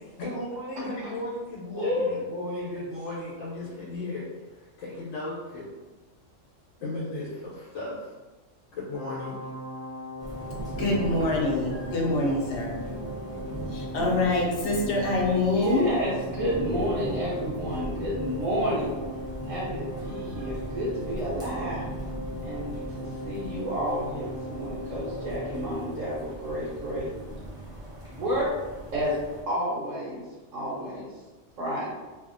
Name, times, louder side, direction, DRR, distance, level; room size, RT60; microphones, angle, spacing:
voice 1, 0.2-5.6 6.8-8.1 8.7-9.4, left 2 dB, 90° left, -7 dB, 1.1 m, -35 dB
voice 2, 1.8-2.2 15.5-19.0 19.4-21.8 22.4-27.1 28.1-28.5 28.9-29.2 29.5-30.2 30.5-31.1 31.6-31.9, equal, 80° right, -8 dB, 1.1 m, -30 dB
sound 1, 8.9-25.7, equal, 40° left, 0.8 m, -38 dB
sound 2, 10.2-29.4, right 1 dB, 5° right, 0.3 m, -39 dB
voice 3, 10.8-12.8 13.7-15.9, left 2 dB, 70° left, -2 dB, 0.8 m, -25 dB
2.7 x 2.4 x 2.5 m, 1.2 s
omnidirectional pair, 1.3 m